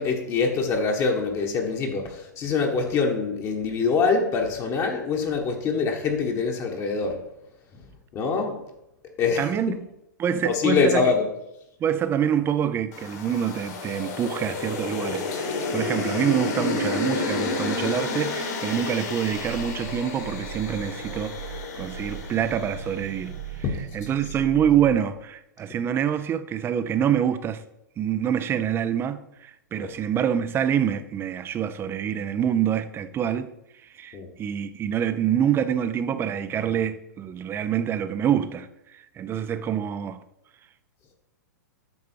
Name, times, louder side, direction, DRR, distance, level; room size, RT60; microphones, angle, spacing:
voice 1, 0.0-7.2 8.1-8.6 9.2-9.5 10.3-11.3 15.3-15.4 23.6-23.9 29.8-29.9 34.1-34.3, left 4 dB, 30° left, 1.5 m, -24 dB
voice 2, 9.4-9.8 10.2-11.1 11.8-21.4 21.7-23.4 23.9-27.6 28.0-33.5 33.9-38.7 39.2-40.2, right 9 dB, 20° right, 0.7 m, -26 dB
sound 1, 12.9-23.3, left 3 dB, 55° left, 2.5 m, -31 dB
Growling, 19.2-25.1, right 7 dB, 60° right, 0.7 m, -38 dB
8.7 x 6.1 x 4.5 m
hypercardioid pair, 115°, 10 cm